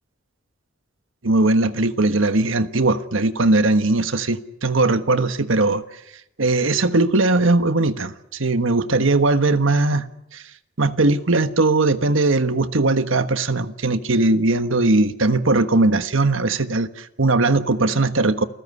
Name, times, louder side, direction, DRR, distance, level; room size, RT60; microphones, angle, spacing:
voice 1, 1.2-5.8 6.4-10.0 10.3-10.4 10.8-18.4, right 2 dB, 80° right, 1.4 m, -19 dB
29.0 x 15.0 x 9.8 m
head